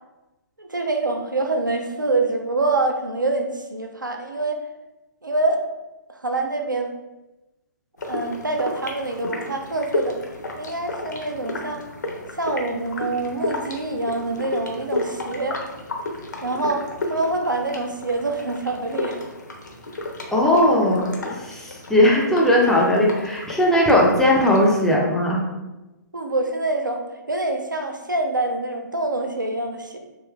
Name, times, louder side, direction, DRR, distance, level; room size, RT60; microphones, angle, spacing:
voice 1, 0.6-4.6 5.2-5.6 6.1-6.9 8.1-10.2 10.6-11.8 12.3-15.6 16.4-19.2 26.1-30.0, right 2 dB, 85° right, 3 dB, 0.5 m, -25 dB
sound 1, 8.0-24.9, left 2 dB, 65° left, 0.6 m, -32 dB
voice 2, 20.3-21.1 21.4-25.4, left 1 dB, 5° left, -3 dB, 0.3 m, -18 dB
3.2 x 2.7 x 2.2 m, 1.0 s
figure-of-eight pair, 125°, 10 cm